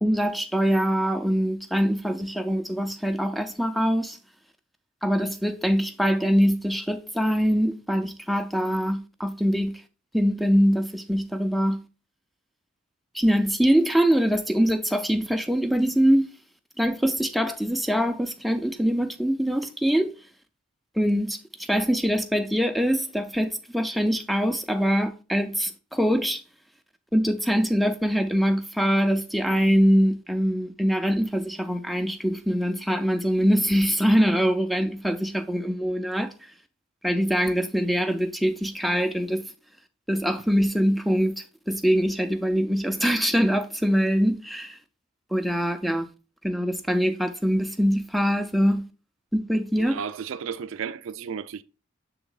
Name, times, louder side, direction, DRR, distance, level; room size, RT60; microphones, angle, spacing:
voice 1, 0.0-4.2 5.0-9.8 10.1-11.8 13.1-16.3 16.8-20.1 21.0-26.4 27.1-36.3 37.0-39.5 40.1-44.8 45.3-46.1 46.4-48.8 49.3-50.0, equal, ahead, 0.5 m, -23 dB
voice 2, 49.8-51.6, right 7 dB, 85° right, 0.4 m, -33 dB
7.0 x 3.6 x 3.8 m
head